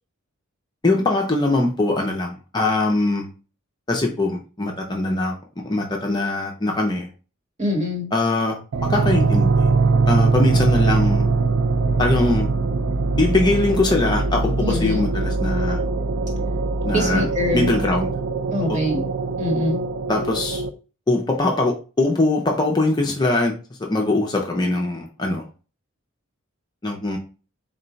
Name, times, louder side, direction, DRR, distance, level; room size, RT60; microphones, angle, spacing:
voice 1, 0.8-3.3 3.9-5.4 5.6-7.1 8.1-9.7 10.1-11.2 12.0-12.5 13.2-15.8 16.8-17.2 17.5-18.1 18.7-18.8 20.1-20.6 21.1-23.5 23.8-25.5 26.8-27.2, left 2 dB, 20° left, 1 dB, 0.5 m, -22 dB
voice 2, 7.6-8.1 14.6-15.1 16.9-17.8 18.5-19.1 19.4-19.8, left 1 dB, 35° right, 0 dB, 1.3 m, -24 dB
sound 1, 8.7-20.7, right 3 dB, 70° right, 0.4 m, -22 dB
3.7 x 2.2 x 3.9 m, 0.34 s
head